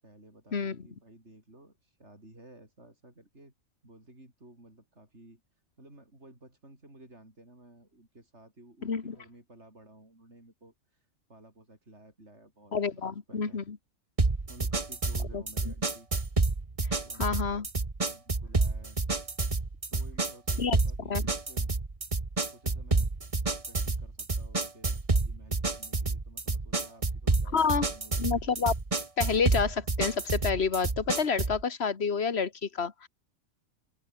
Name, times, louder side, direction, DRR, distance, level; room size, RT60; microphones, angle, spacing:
voice 1, 0.0-3.5 3.8-5.4 5.8-13.7 14.5-16.1 17.0-17.7 18.0-19.0 19.9-21.7 22.5-23.1 23.7-28.4, right 1 dB, 60° right, 7.3 m, -54 dB
voice 2, 8.8-9.2 12.7-13.8 15.3-15.4 17.2-17.7 20.6-20.8 21.1-21.2 27.5-27.9 28.2-28.7 29.2-33.1, left 5 dB, 55° left, 1.8 m, -28 dB
sound 1, 14.2-31.6, right 3 dB, 25° right, 1.5 m, -29 dB
open air
omnidirectional pair, 1.3 m